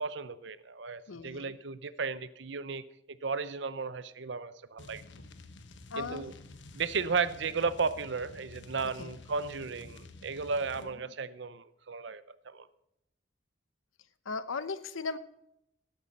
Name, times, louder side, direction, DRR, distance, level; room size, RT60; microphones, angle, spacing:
voice 1, 0.0-2.8 3.2-5.0 6.0-6.3 6.7-12.7, right 4 dB, 60° right, 16 dB, 0.6 m, -34 dB
voice 2, 1.1-1.6 5.9-6.2 8.8-9.1 10.7-10.9 14.2-15.2, left 4 dB, 85° left, 14 dB, 0.9 m, -37 dB
sound 1, 4.8-10.9, left 2 dB, 65° left, 1.1 m, -50 dB
12.5 x 12.5 x 4.2 m, 0.80 s
head